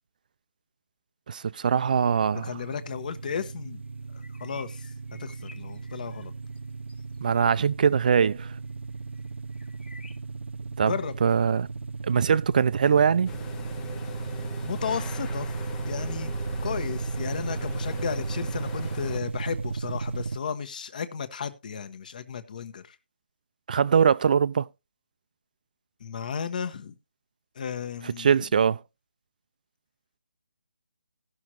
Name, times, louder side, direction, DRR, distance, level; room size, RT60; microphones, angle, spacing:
voice 1, 1.3-2.5 7.2-8.5 10.8-10.9 11.2-11.7 12.0-13.3 23.7-24.7 28.2-28.8, right 7 dB, 45° right, 0.5 m, -22 dB
sound 1, 1.8-20.4, right 4 dB, 85° right, 0.6 m, -35 dB
voice 2, 2.3-3.8 4.1-4.9 5.2-6.3 10.9-11.1 14.6-15.5 15.9-16.3 16.6-23.0 26.0-27.0 27.5-28.3, left 7 dB, 45° left, 1.2 m, -34 dB
sound 2, 4.2-6.6 6.9-7.3 8.1-8.2 8.4-8.7 9.1-10.2, left 3 dB, 75° left, 1.9 m, -53 dB
sound 3, 13.3-19.2, left 5 dB, 10° left, 0.5 m, -42 dB
17.5 x 6.3 x 2.9 m
hypercardioid pair, 165°, 6 cm